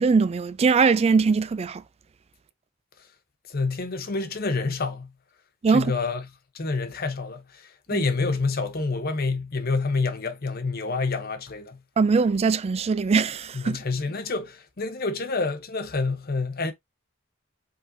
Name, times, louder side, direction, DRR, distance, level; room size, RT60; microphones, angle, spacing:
voice 1, 0.0-1.8 5.6-5.9 12.0-13.8, right 5 dB, 30° right, 0.3 m, -21 dB
voice 2, 3.5-5.1 5.7-6.2 6.5-11.8 13.5-16.7, left 3 dB, 50° left, 0.8 m, -28 dB
5.2 x 3.9 x 2.6 m
head